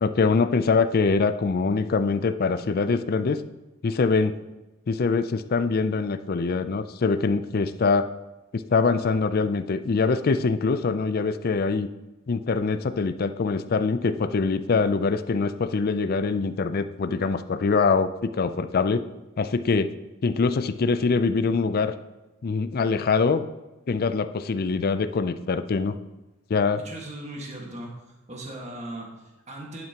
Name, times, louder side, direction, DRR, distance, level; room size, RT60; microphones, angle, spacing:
voice 1, 0.0-3.4 3.8-4.4 4.9-8.1 8.5-11.9 12.3-19.0 19.4-19.9 20.2-21.9 22.4-23.4 23.9-26.0 26.5-26.8, left 4 dB, 45° left, 11 dB, 0.4 m, -24 dB
voice 2, 26.8-27.9 28.3-29.8, right 1 dB, 35° right, -1 dB, 1.6 m, -38 dB
11.0 x 8.8 x 2.9 m, 1.1 s
head